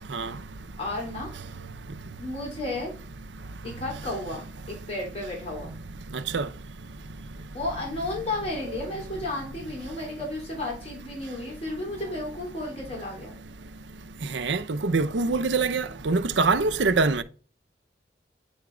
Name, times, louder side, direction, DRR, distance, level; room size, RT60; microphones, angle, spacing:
voice 1, 0.8-1.3 2.2-2.9 3.6-5.8 7.5-13.4, left 2 dB, 35° left, 2.9 m, -33 dB
voice 2, 14.3-17.2, right 4 dB, 85° right, 0.7 m, -24 dB
9.4 x 3.5 x 5.0 m
head